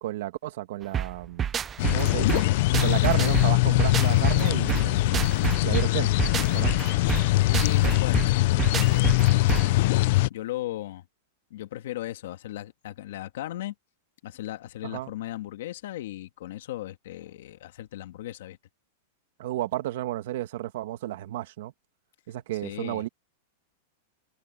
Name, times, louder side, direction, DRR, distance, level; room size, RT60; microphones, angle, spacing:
voice 1, 0.0-1.5 1.9-2.4 2.8-5.2 5.6-6.1 6.5-6.7 14.8-15.1 19.4-21.7 22.3-23.1, right 15 dB, 55° right, 2.1 m, -32 dB
sound 1, 0.9-9.8, right 8 dB, 15° right, 0.5 m, -29 dB
sound 2, 1.8-10.3, left 19 dB, 45° left, 0.4 m, -22 dB
voice 2, 7.5-9.4 10.3-11.1 11.5-13.7 14.2-18.6 22.6-23.0, left 14 dB, 60° left, 1.7 m, -37 dB
supercardioid pair, 175°, 0 cm